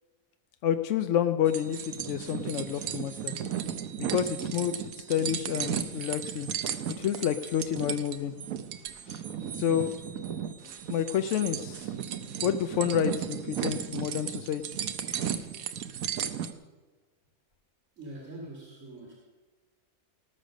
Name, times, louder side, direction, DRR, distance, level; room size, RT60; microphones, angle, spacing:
voice 1, 0.6-3.3 4.0-6.5 7.0-8.3 9.1-9.2 9.5-10.0 10.9-11.9 12.2-14.6, left 9 dB, 65° left, 9 dB, 0.9 m, -29 dB
sound 1, 1.5-16.5, right 9 dB, 75° right, 1.2 m, -35 dB
voice 2, 18.0-19.1, right 1 dB, 55° right, -3 dB, 2.6 m, -43 dB
18.5 x 6.7 x 6.4 m, 1.3 s
omnidirectional pair, 1.5 m